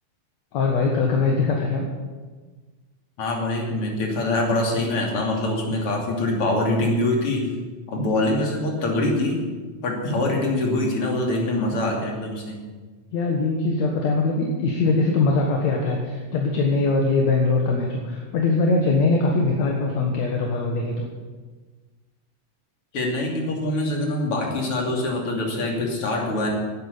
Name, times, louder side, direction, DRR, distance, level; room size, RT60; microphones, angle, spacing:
voice 1, 0.5-1.9 13.1-21.1, left 3 dB, 65° left, 1 dB, 2.6 m, -22 dB
voice 2, 3.2-7.4 7.9-9.4 9.8-12.6 22.9-26.5, left 2 dB, 50° left, 0 dB, 3.6 m, -24 dB
12.5 x 9.2 x 9.6 m, 1.4 s
omnidirectional pair, 3.4 m